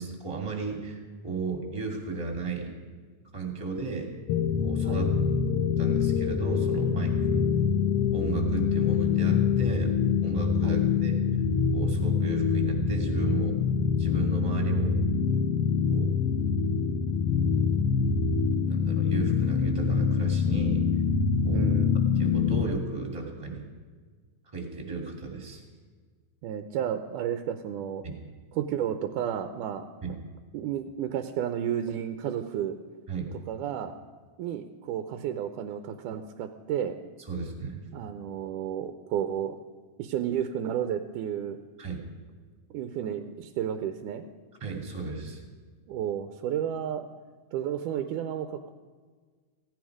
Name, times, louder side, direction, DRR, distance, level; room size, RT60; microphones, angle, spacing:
voice 1, 0.0-2.7 3.3-4.1 4.6-5.1 5.8-7.4 8.1-9.9 10.2-11.2 11.7-13.6 14.0-15.0 15.9-16.2 18.7-20.8 21.4-21.6 22.2-23.6 24.5-25.6 28.0-28.2 30.0-30.1 33.1-33.3 37.3-37.8 41.8-42.0 44.6-45.4, right 4 dB, 10° right, 2 dB, 2.2 m, -34 dB
sound 1, 4.3-22.7, left 6 dB, 75° left, 1.4 m, -25 dB
voice 2, 21.5-22.0 26.4-28.0 28.6-29.9 30.5-32.8 33.5-33.9 34.4-37.0 37.9-39.6 40.0-41.6 42.7-44.3 45.9-47.1 47.5-48.7, right 9 dB, 90° right, 8 dB, 2.2 m, -32 dB
16.5 x 15.5 x 4.9 m, 1.5 s
omnidirectional pair, 3.6 m